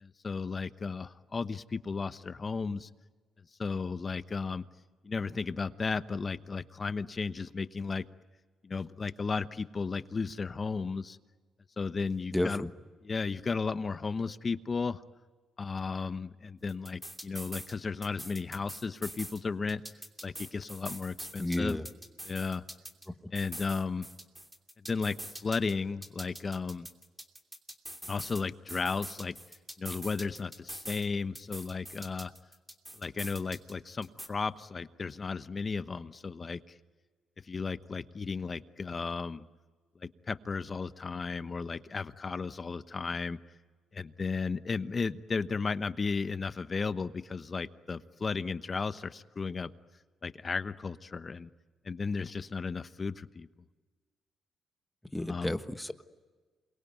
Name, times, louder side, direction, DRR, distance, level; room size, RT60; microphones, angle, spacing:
voice 1, 0.0-2.9 3.6-4.6 5.0-8.0 8.6-11.2 11.8-12.6 13.0-15.0 15.6-19.8 20.2-21.8 22.2-22.6 23.3-24.1 24.9-26.9 28.1-29.3 29.8-32.3 33.0-36.7 37.5-39.4 40.0-43.4 43.9-49.7 50.2-51.5 51.8-53.5 55.2-55.5, left 4 dB, 35° left, 13 dB, 1.0 m, -34 dB
voice 2, 12.3-12.7 21.4-21.9 55.1-56.0, left 1 dB, 5° left, 9 dB, 1.4 m, -32 dB
sound 1, 16.7-17.7 18.0-19.4 19.7-23.1 23.4-25.7 26.0-28.4 28.7-31.1 31.4-33.7 34.0-34.3, right 1 dB, 10° right, 2.9 m, -44 dB
28.0 x 22.5 x 9.4 m, 1.4 s
cardioid pair, 90°, 0 cm